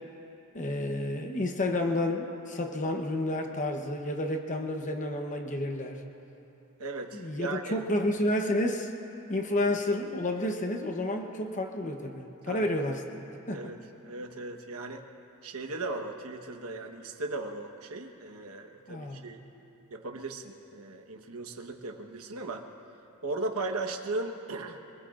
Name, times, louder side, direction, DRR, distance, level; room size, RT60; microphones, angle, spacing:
voice 1, 0.5-6.0 7.1-8.9 9.3-13.0 13.5-13.7 18.9-19.3, left 1 dB, 35° left, 3 dB, 0.9 m, -30 dB
voice 2, 6.8-7.8 9.6-9.7 12.5-12.7 13.5-15.0 15.4-19.4 19.9-22.7 23.2-24.8, right 2 dB, 70° right, 4 dB, 1.2 m, -37 dB
26.5 x 20.5 x 2.5 m, 2.9 s
head